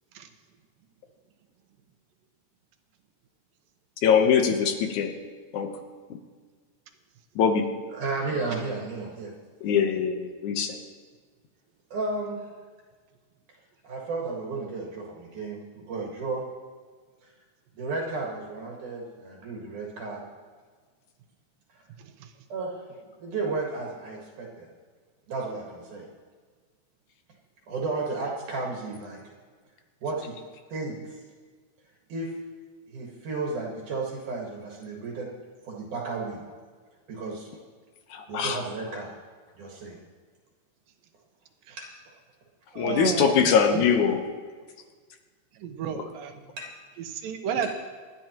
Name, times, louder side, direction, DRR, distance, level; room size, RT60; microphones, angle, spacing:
voice 1, 4.0-5.1 5.5-5.7 7.4-7.6 9.6-10.8 38.1-38.6 42.8-44.2 45.9-46.0, left 7 dB, 70° left, 5 dB, 2.2 m, -22 dB
voice 2, 7.9-9.3 11.9-12.4 13.8-16.4 17.8-20.2 21.7-21.8 22.5-22.7 23.2-24.7 25.3-26.0 27.7-29.2 30.0-30.4 30.7-31.2 32.1-32.3 32.9-35.3 35.6-36.4 37.1-37.5 38.3-39.1 39.6-40.0 41.8-41.9 46.6-46.7 47.6-47.7, right 3 dB, 65° right, -2 dB, 3.0 m, -33 dB
voice 3, 42.7-43.8 45.6-46.3 47.1-47.8, right 8 dB, 85° right, 6 dB, 2.7 m, -31 dB
28.0 x 11.0 x 3.0 m, 1.5 s
omnidirectional pair, 3.9 m